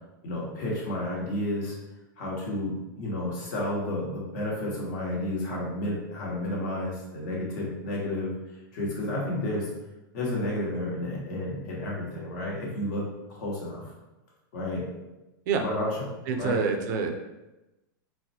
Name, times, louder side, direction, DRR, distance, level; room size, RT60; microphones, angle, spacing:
voice 1, 0.2-1.8 2.2-8.3 8.7-9.7 10.1-13.0 13.3-13.8 14.5-14.8 15.6-15.9 16.4-16.6, left 1 dB, 60° left, -4 dB, 1.3 m, -31 dB
voice 2, 16.3-17.1, right 5 dB, 55° right, 4 dB, 0.5 m, -26 dB
4.1 x 2.2 x 2.8 m, 1.0 s
hypercardioid pair, 140°, 11 cm